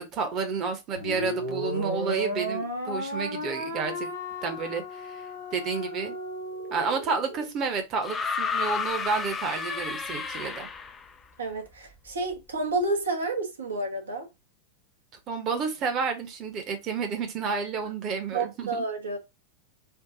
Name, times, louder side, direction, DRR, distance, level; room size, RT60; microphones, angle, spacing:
voice 1, 0.0-4.1 4.4-5.2 5.5-6.1 6.7-10.7 15.3-18.8, right 5 dB, 35° right, 1.1 m, -30 dB
sound 1, 0.9-7.5, equal, 90° right, 1.5 m, -34 dB
sound 2, 8.0-11.1 12.3-12.4, left 5 dB, 20° left, 0.5 m, -31 dB
voice 2, 11.4-14.3 18.3-19.2, right 3 dB, 70° right, 1.2 m, -30 dB
4.6 x 2.5 x 3.9 m
figure-of-eight pair, 90°, 0 cm